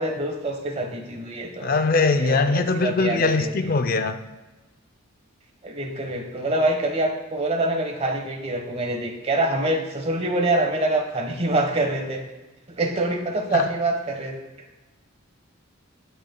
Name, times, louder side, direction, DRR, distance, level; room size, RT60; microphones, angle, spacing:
voice 1, 0.0-1.8 2.2-3.7 5.6-12.2 12.8-14.4, right 2 dB, 30° right, 3 dB, 1.1 m, -25 dB
voice 2, 1.6-4.2 13.5-13.6, left 3 dB, 45° left, 9 dB, 0.4 m, -21 dB
19.5 x 6.6 x 2.2 m, 1.1 s
head